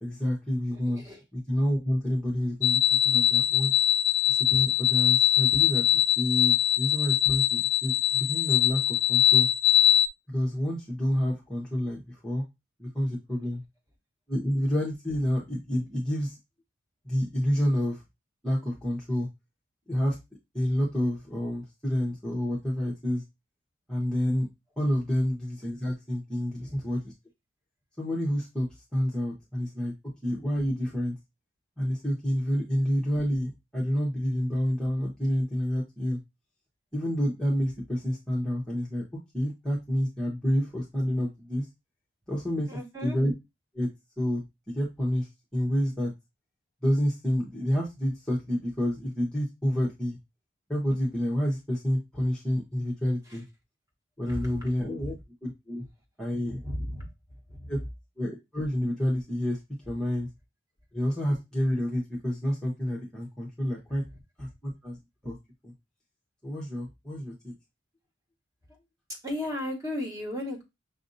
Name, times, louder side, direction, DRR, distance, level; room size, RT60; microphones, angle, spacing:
voice 1, 0.0-1.0 1.3-3.7 4.3-9.5 10.3-12.4 12.8-13.6 14.3-16.4 17.0-18.0 18.4-19.3 19.9-20.2 20.5-23.2 23.9-24.5 24.8-27.0 28.0-29.9 30.2-31.1 31.8-36.2 36.9-39.0 39.3-41.7 42.3-42.7 43.0-43.3 43.7-43.9 44.2-45.3 45.5-46.1 46.8-50.2 50.7-53.4 54.2-55.2 55.4-55.9 56.2-56.6 57.7-57.8 58.2-59.6 59.9-60.3 60.9-64.0 64.4-65.0 65.2-65.4 65.6-65.7 66.4-67.5, equal, 5° left, -5 dB, 0.9 m, -29 dB
voice 2, 0.7-1.2 26.6-26.8 42.7-43.2 53.3-53.4 54.2-54.6 55.0-55.1 56.5-57.1 57.5-57.7 69.2-70.6, left 1 dB, 15° right, -1 dB, 1.3 m, -35 dB
sound 1, 2.6-10.1, left 11 dB, 75° left, 0.4 m, -22 dB
6.2 x 2.6 x 2.6 m, 0.22 s
head